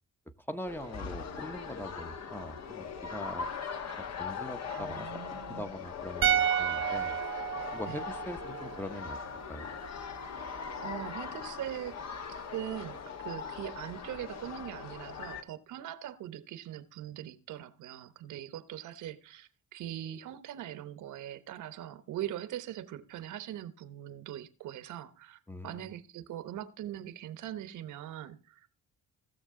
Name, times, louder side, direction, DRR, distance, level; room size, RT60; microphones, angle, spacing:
voice 1, 0.5-3.5 4.0-7.2 7.7-9.2 9.5-9.7 25.5-25.9, left 1 dB, 5° left, 0.8 m, -42 dB
sound 1, 0.7-15.4, left 6 dB, 60° left, 1.2 m, -40 dB
voice 2, 4.7-5.8 7.8-8.0 10.8-12.0 12.3-28.9, right 12 dB, 80° right, 1.0 m, -41 dB
sound 2, 6.2-9.4 9.7-9.8, right 10 dB, 45° right, 0.5 m, -31 dB
17.0 x 6.6 x 3.7 m
cardioid pair, 90°, 30 cm